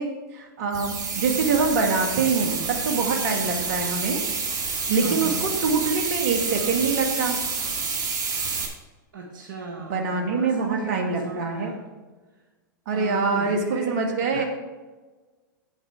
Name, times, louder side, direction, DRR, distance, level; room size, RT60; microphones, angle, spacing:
voice 1, 0.0-4.2 4.9-7.4 9.8-11.7 12.9-14.4, right 4 dB, 60° right, 3 dB, 2.1 m, -25 dB
sound 1, 0.7-8.7, right 5 dB, 35° right, 2.5 m, -28 dB
voice 2, 5.0-5.5 9.1-11.8 12.9-14.4, right 4 dB, 75° right, 0 dB, 1.7 m, -35 dB
8.9 x 7.9 x 4.9 m, 1.3 s
hypercardioid pair, 110°, 11 cm